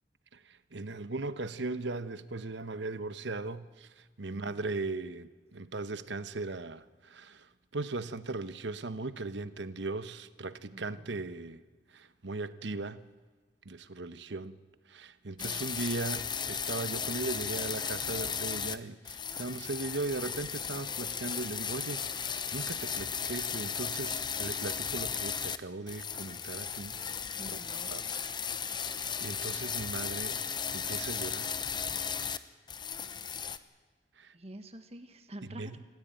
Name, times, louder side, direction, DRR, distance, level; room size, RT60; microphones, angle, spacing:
voice 1, 0.3-11.6 11.9-13.0 13.6-14.6 14.9-27.0 27.8-28.0 29.2-30.4 30.7-31.5 34.2-34.3 35.6-35.8, right 3 dB, 85° right, 1.0 m, -38 dB
voice 2, 4.2-4.7 10.7-11.2 15.4-15.8 27.4-28.0 34.3-35.9, right 1 dB, 35° right, 1.5 m, -48 dB
sound 1, 15.4-18.8 19.0-25.6 25.9-32.4 32.7-33.6, left 7 dB, 25° left, 0.8 m, -35 dB
27.0 x 14.5 x 9.1 m
head